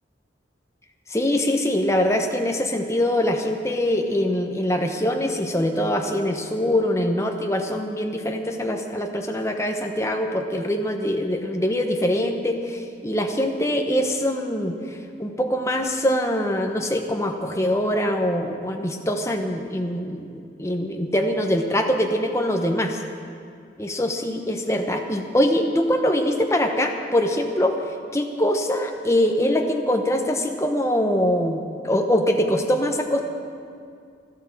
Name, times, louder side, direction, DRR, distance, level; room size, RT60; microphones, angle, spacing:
voice 1, 1.1-14.8 15.2-23.0 23.8-27.8 28.1-33.2, left 1 dB, 15° left, 3 dB, 0.9 m, -23 dB
13.0 x 12.0 x 7.5 m, 2.3 s
head